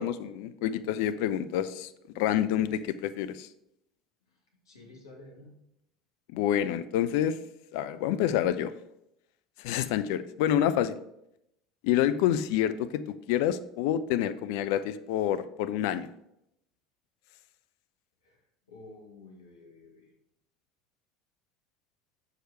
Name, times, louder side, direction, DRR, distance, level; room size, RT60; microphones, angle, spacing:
voice 1, 0.0-1.9 2.2-3.5 6.3-7.4 7.7-8.7 9.6-11.0 11.8-16.1, left 10 dB, 55° left, 13 dB, 0.4 m, -28 dB
voice 2, 4.6-5.5 18.2-18.4 18.7-20.1, left 2 dB, 75° left, -1 dB, 1.6 m, -51 dB
6.3 x 4.8 x 4.5 m, 0.80 s
figure-of-eight pair, 70°, 2 cm